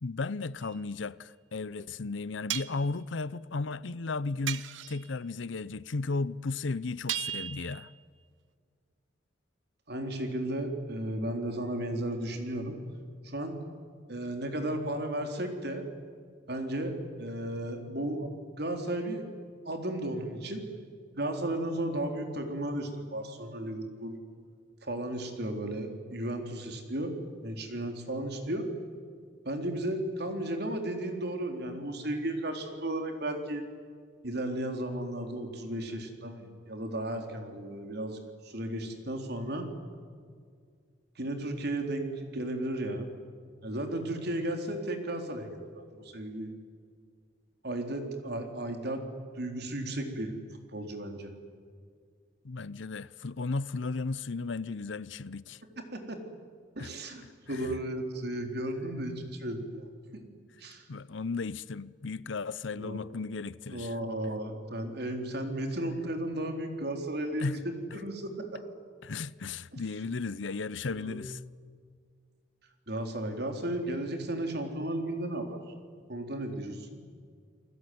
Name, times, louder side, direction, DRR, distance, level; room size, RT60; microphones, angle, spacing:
voice 1, 0.0-7.9 52.4-55.6 56.8-56.9 57.5-57.7 60.9-63.9 67.4-67.6 69.0-71.4, left 3 dB, 80° left, 0.7 m, -35 dB
sound 1, 0.6-0.8 2.5-2.9 4.5-5.1 7.1-8.0, right 12 dB, 85° right, 1.0 m, -36 dB
voice 2, 9.9-12.8 13.2-13.6 14.1-15.9 16.5-18.3 18.6-19.2 19.7-20.6 21.1-24.2 24.8-27.1 27.4-28.7 29.5-33.7 34.2-39.7 41.2-43.1 43.6-46.5 47.6-49.0 49.4-50.3 50.7-51.3 55.9-56.2 56.8-60.2 60.6-60.8 62.8-63.0 63.7-68.6 70.9-71.2 72.9-75.6 76.1-77.0, right 1 dB, 60° right, 3.9 m, -34 dB
30.0 x 20.5 x 9.5 m
head